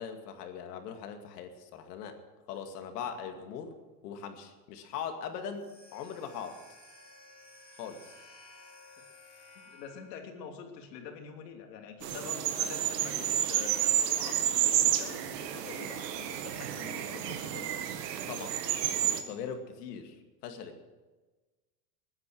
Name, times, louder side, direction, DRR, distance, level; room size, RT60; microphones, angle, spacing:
voice 1, 0.0-2.2 2.5-3.7 4.0-6.6 7.8-8.2 18.3-18.6 19.3-20.2 20.4-20.8, left 7 dB, 75° left, 5 dB, 2.3 m, -40 dB
sound 1, 5.5-10.3, left 2 dB, 20° left, 3.5 m, -55 dB
voice 2, 9.5-17.7, left 6 dB, 90° left, 3 dB, 3.0 m, -46 dB
sound 2, 12.0-19.2, right 10 dB, 85° right, 1.9 m, -30 dB
20.5 x 9.7 x 6.3 m, 1.2 s
supercardioid pair, 180°, 48 cm